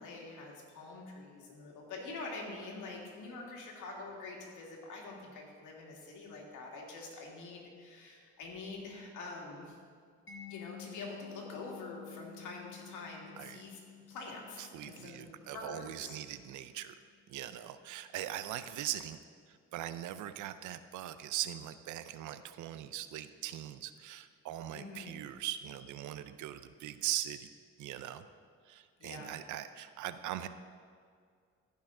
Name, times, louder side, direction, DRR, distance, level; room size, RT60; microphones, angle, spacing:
voice 1, 0.0-9.7 10.5-13.8 14.1-16.2 24.7-25.2 29.0-29.4, left 3 dB, 80° left, -1 dB, 2.1 m, -46 dB
Mallet percussion, 10.3-17.0, left 10 dB, 40° left, 1.5 m, -52 dB
voice 2, 14.7-16.9 17.3-19.2 19.7-27.5 27.8-28.2 28.7-30.5, right 12 dB, 80° right, 12 dB, 0.5 m, -40 dB
15.0 x 5.7 x 3.8 m, 2.1 s
cardioid pair, 90°, 30 cm